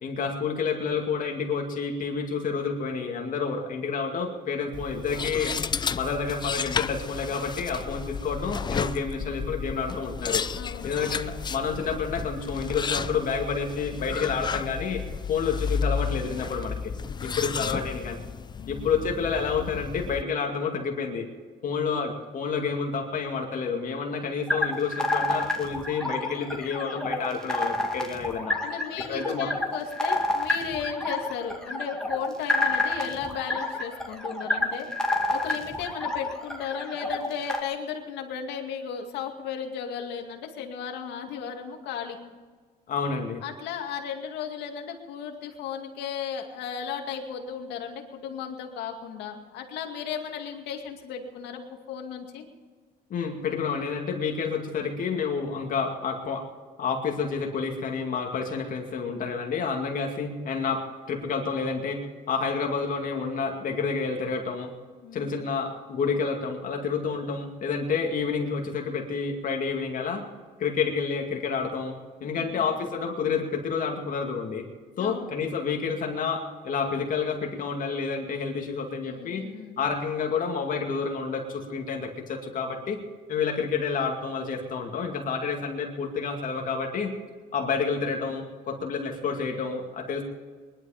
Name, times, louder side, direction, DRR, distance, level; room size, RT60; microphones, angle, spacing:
voice 1, 0.0-5.6 6.0-10.4 10.8-15.0 15.3-16.9 17.2-18.2 18.7-21.3 21.6-28.6 29.1-29.5 42.9-43.4 53.1-56.4 56.8-62.0 62.3-64.7 65.1-70.2 70.6-71.9 72.2-74.6 75.0-79.5 79.8-83.0 83.3-87.1 87.5-90.2, left 5 dB, 55° left, 2 dB, 2.3 m, -29 dB
sound 1, 4.7-20.2, left 6 dB, 25° left, 0.5 m, -32 dB
voice 2, 10.5-10.9 17.2-17.8 18.5-19.1 28.6-34.9 35.3-42.2 43.4-52.4 65.0-65.3 72.2-72.6 75.0-75.3 79.0-79.8, left 7 dB, 85° left, 3 dB, 2.2 m, -35 dB
sound 2, 24.5-37.6, left 2 dB, 5° left, 2.2 m, -29 dB
21.0 x 12.0 x 5.0 m, 1.5 s
cardioid pair, 110°, 17 cm